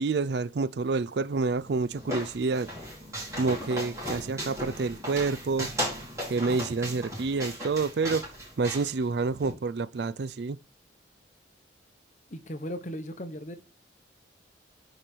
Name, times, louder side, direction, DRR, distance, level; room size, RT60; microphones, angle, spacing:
voice 1, 0.0-2.7 3.4-5.7 6.3-8.2 8.6-10.6, right 4 dB, 60° right, 0.4 m, -28 dB
sound 1, 1.4-9.5, equal, 15° right, 5.1 m, -37 dB
voice 2, 12.3-13.6, equal, 40° left, 1.0 m, -37 dB
10.0 x 5.1 x 4.4 m
head